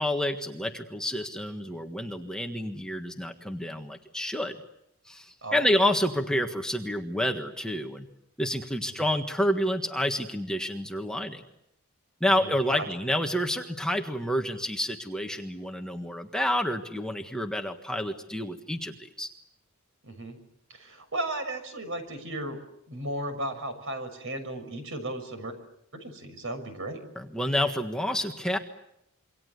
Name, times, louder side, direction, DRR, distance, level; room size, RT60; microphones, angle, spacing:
voice 1, 0.0-4.6 5.0-8.1 8.4-11.4 12.2-19.3 27.1-28.6, equal, 5° left, 4 dB, 1.6 m, -29 dB
voice 2, 12.4-12.9 20.0-20.4 20.7-22.6 22.9-25.6 25.9-27.0, right 1 dB, 60° right, 8 dB, 6.2 m, -35 dB
27.5 x 24.5 x 8.3 m, 0.78 s
head